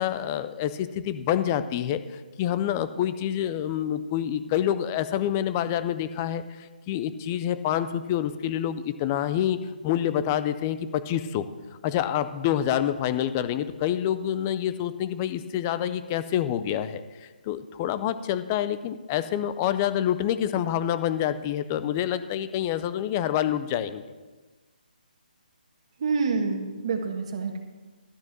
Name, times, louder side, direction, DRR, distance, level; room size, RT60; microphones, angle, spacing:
voice 1, 0.0-11.5 11.8-24.0, left 10 dB, 15° left, 12 dB, 0.3 m, -27 dB
voice 2, 26.0-27.6, right 4 dB, 35° right, 4 dB, 1.4 m, -27 dB
12.5 x 6.3 x 7.3 m, 1.3 s
hypercardioid pair, 170°, 5 cm